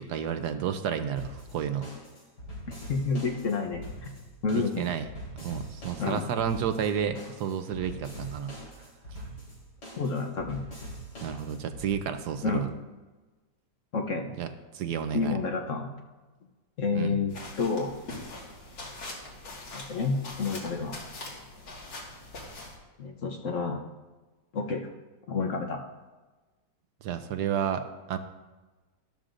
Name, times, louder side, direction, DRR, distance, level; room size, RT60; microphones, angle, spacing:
voice 1, 0.0-1.9 4.5-5.1 5.4-8.5 11.2-12.7 14.4-15.4 16.9-17.2 27.0-28.2, right 8 dB, 70° right, 8 dB, 1.2 m, -31 dB
sound 1, 1.2-11.8, equal, 70° left, 4.5 m, -43 dB
voice 2, 2.9-3.9 4.4-4.9 6.0-6.3 10.0-10.6 12.4-12.7 13.9-14.3 15.1-15.9 16.8-17.9 19.7-21.0 23.0-23.8 24.5-24.9 25.3-25.8, left 4 dB, 55° left, 3 dB, 1.1 m, -29 dB
sound 2, 17.3-22.8, left 2 dB, 85° left, 2.6 m, -42 dB
13.0 x 12.5 x 2.6 m, 1.2 s
omnidirectional pair, 1.9 m